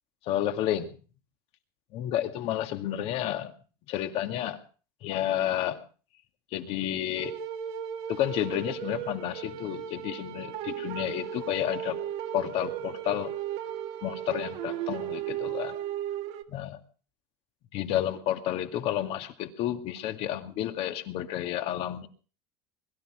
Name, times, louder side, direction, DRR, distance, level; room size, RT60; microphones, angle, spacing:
voice 1, 0.2-1.0 1.9-3.5 3.9-4.6 5.0-5.8 6.5-7.3 8.1-12.0 12.3-13.4 14.0-15.8 16.5-16.8 17.7-22.1, left 12 dB, 55° left, 7 dB, 2.2 m, -31 dB
sound 1, 7.2-16.4, right 10 dB, 65° right, 1.8 m, -36 dB
22.0 x 12.5 x 5.0 m, 0.39 s
supercardioid pair, 125°, 12 cm